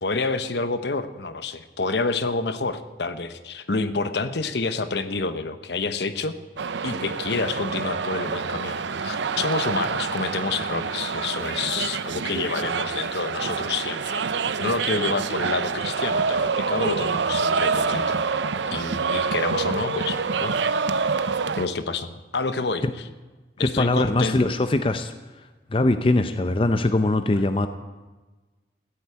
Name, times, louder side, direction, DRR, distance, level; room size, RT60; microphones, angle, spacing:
voice 1, 0.0-6.3 6.8-14.3 14.6-18.2 18.7-20.6 21.1-21.2 21.6-23.0 23.6-24.4, left 3 dB, 70° left, 11 dB, 0.9 m, -28 dB
sound 1, 6.6-21.7, right 5 dB, 85° right, 0.6 m, -26 dB
voice 2, 23.6-25.1 25.7-27.7, left 2 dB, 30° left, 9 dB, 0.5 m, -22 dB
15.0 x 8.3 x 8.6 m, 1.2 s
head